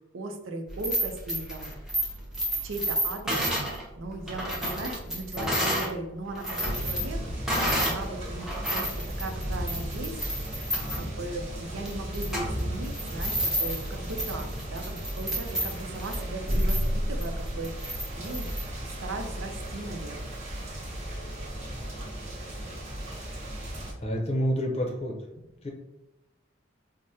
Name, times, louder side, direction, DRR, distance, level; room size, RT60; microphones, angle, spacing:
voice 1, 0.1-1.7 2.6-8.9 9.2-10.2 11.0-18.5 18.8-20.4, right 2 dB, 90° right, 4 dB, 0.6 m, -38 dB
sound 1, 0.7-5.9 6.3-8.0 8.4-18.6, equal, 5° right, 0.7 m, -31 dB
sound 2, 6.6-23.9, equal, 35° right, 1.0 m, -34 dB
voice 2, 24.0-25.2 25.6-25.7, equal, 30° left, 1 dB, 0.6 m, -28 dB
4.7 x 2.1 x 2.8 m, 0.93 s
head